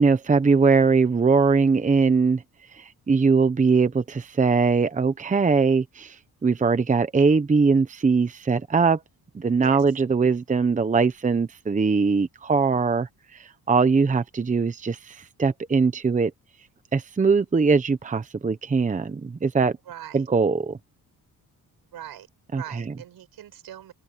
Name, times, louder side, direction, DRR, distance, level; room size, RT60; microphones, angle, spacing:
voice 1, 0.0-2.4 2.7-6.2 6.4-9.0 9.3-16.3 16.9-19.8 20.1-20.8 22.5-22.9, right 4 dB, 20° right, 0.9 m, -21 dB
voice 2, 19.9-20.2 21.9-23.9, right 11 dB, 80° right, 7.9 m, -41 dB
cardioid pair, 125°, 36 cm